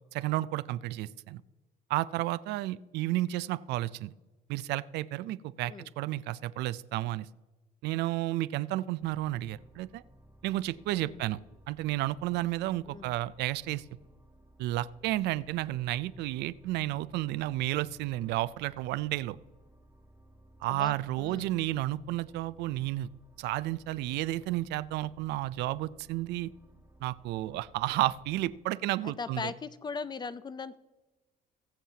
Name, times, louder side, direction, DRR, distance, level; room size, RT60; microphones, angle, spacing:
voice 1, 0.1-1.4 1.9-4.1 4.5-7.3 7.8-10.0 10.4-11.4 11.7-13.8 14.6-19.4 20.6-23.1 23.4-26.5 27.0-29.5, right 16 dB, 85° right, 16 dB, 0.4 m, -32 dB
sound 1, 9.0-28.6, right 1 dB, 10° right, 1.3 m, -59 dB
voice 2, 20.7-21.6 29.0-30.8, left 5 dB, 25° left, 15 dB, 0.5 m, -39 dB
21.5 x 7.4 x 2.8 m, 1.2 s
cardioid pair, 110°, 17 cm